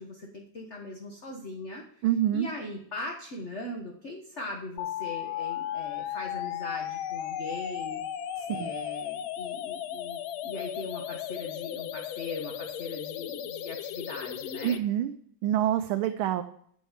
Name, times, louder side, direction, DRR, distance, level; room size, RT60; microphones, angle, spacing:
voice 1, 0.0-2.0 2.3-8.0 8.5-14.8, left 2 dB, 40° left, 1 dB, 1.4 m, -40 dB
voice 2, 2.0-2.5 8.4-8.7 14.6-15.1 15.4-16.4, right 11 dB, 85° right, 8 dB, 1.5 m, -26 dB
sound 1, 4.8-14.8, left 10 dB, 80° left, 1.5 m, -35 dB
11.5 x 5.5 x 7.3 m, 0.63 s
omnidirectional pair, 2.2 m